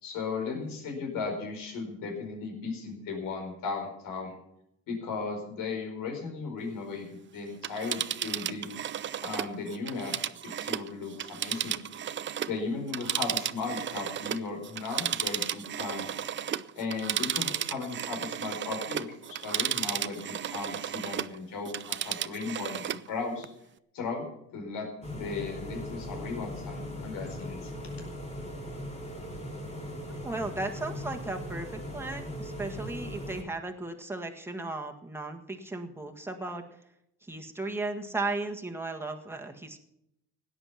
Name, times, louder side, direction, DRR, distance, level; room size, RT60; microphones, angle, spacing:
voice 1, 0.0-4.4 4.9-7.1 7.3-8.7 9.2-10.2 10.4-11.8 12.5-16.1 16.7-20.2 20.5-23.5 23.9-24.3 24.5-27.7, left 4 dB, 80° left, 3 dB, 4.9 m, -36 dB
Telephone, 7.5-12.6 12.9-21.4 21.7-23.1 23.4-23.5, right 10 dB, 35° right, 0.5 m, -34 dB
sound 1, 25.0-33.4, left 1 dB, 20° left, 2.6 m, -39 dB
voice 2, 30.2-36.6 37.2-39.8, right 2 dB, 5° right, 3 dB, 1.7 m, -35 dB
17.0 x 10.0 x 5.8 m, 0.77 s
cardioid pair, 140°, 33 cm